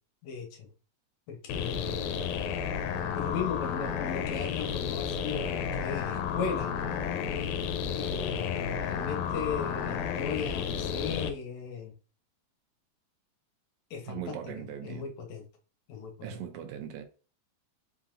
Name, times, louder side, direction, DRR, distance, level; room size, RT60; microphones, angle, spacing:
voice 1, 0.2-0.7 1.3-2.2 3.1-6.7 8.0-11.9 13.9-15.4 15.9-16.4, left 6 dB, 75° left, 2.1 m, -37 dB
sound 1, 1.5-11.3, left 7 dB, 90° left, 2.0 m, -32 dB
voice 2, 14.1-15.1 16.2-17.0, right 9 dB, 80° right, 1.8 m, -39 dB
4.9 x 3.9 x 2.5 m
omnidirectional pair, 3.3 m